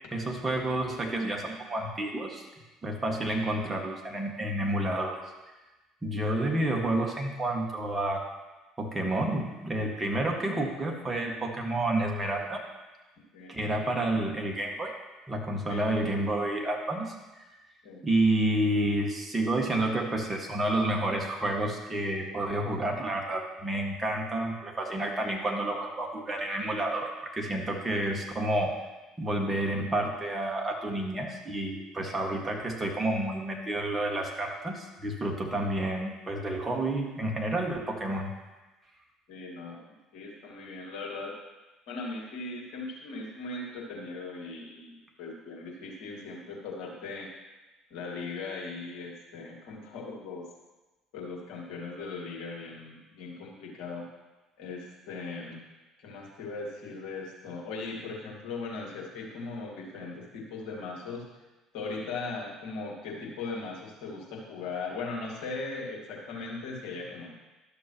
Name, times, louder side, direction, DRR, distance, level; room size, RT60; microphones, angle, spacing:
voice 1, 0.1-2.4 2.8-5.2 6.0-8.2 8.8-12.6 13.5-14.9 15.3-17.4 18.0-28.8 29.2-38.3, right 1 dB, 20° right, 0 dB, 1.8 m, -30 dB
voice 2, 39.3-39.8 40.1-41.4 41.9-47.3 47.9-50.5 51.1-54.1 54.6-55.6 56.0-61.3 61.7-67.3, left 3 dB, 60° left, -3 dB, 1.9 m, -39 dB
12.0 x 6.7 x 3.1 m, 1.1 s
figure-of-eight pair, 55°, 0 cm